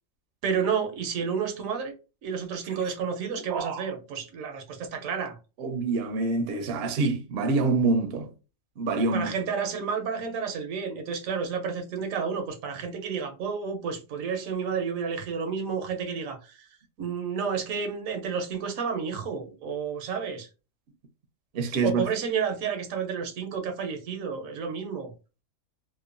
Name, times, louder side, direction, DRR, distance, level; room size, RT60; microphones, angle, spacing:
voice 1, 0.4-1.9 2.2-5.4 9.1-16.7 17.0-20.5 21.8-25.1, right 6 dB, 85° right, 1.1 m, -31 dB
voice 2, 3.5-3.9 5.6-8.3 8.8-9.3 21.5-22.0, right 3 dB, 65° right, 0.6 m, -26 dB
2.9 x 2.1 x 2.4 m
omnidirectional pair, 1.4 m